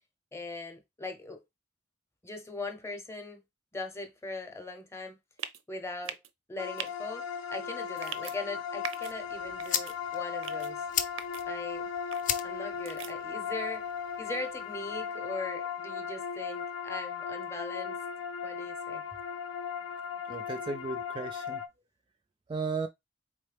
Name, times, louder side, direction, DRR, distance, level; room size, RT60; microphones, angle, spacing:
voice 1, 0.3-1.4 2.2-3.4 3.7-5.2 5.7-6.2 6.5-10.9 11.5-11.9 12.4-13.9 14.2-18.0 18.4-19.0, left 2 dB, 15° left, 0.8 m, -40 dB
sound 1, 5.4-5.6 6.0-6.3 6.8-6.9 8.0-8.4 8.8-9.1 9.6-10.0 10.4-10.7 11.2-11.4 12.1-12.4 12.9-13.1, right 9 dB, 85° right, 0.6 m, -40 dB
sound 2, 6.6-21.7, left 7 dB, 90° left, 0.6 m, -37 dB
sound 3, 9.1-15.1, left 9 dB, 40° left, 0.5 m, -38 dB
voice 2, 20.3-21.6 22.5-22.9, right 4 dB, 25° right, 0.3 m, -35 dB
4.3 x 3.5 x 3.4 m
head